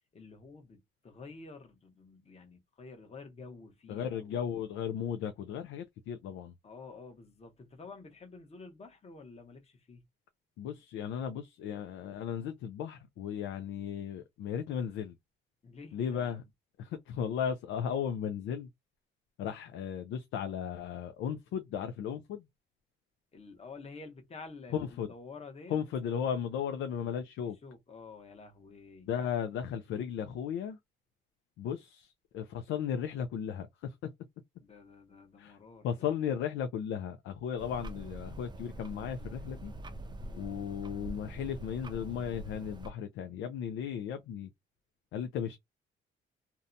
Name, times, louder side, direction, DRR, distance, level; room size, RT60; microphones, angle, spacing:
voice 1, 0.1-4.4 6.6-10.1 15.6-16.4 23.3-25.8 27.6-29.1 34.6-36.1 40.2-40.5, left 4 dB, 30° left, 0.9 m, -50 dB
voice 2, 3.9-6.5 10.6-15.2 15.9-16.4 16.8-18.7 19.4-22.4 24.7-25.1 25.7-27.6 29.1-30.8 31.6-33.9 35.4-35.6 35.8-39.7 40.3-44.5 45.1-45.6, left 8 dB, 80° left, 0.4 m, -35 dB
sound 1, 37.6-42.9, right 1 dB, 20° right, 0.5 m, -44 dB
2.7 x 2.2 x 2.5 m
cardioid pair, 90°, 20 cm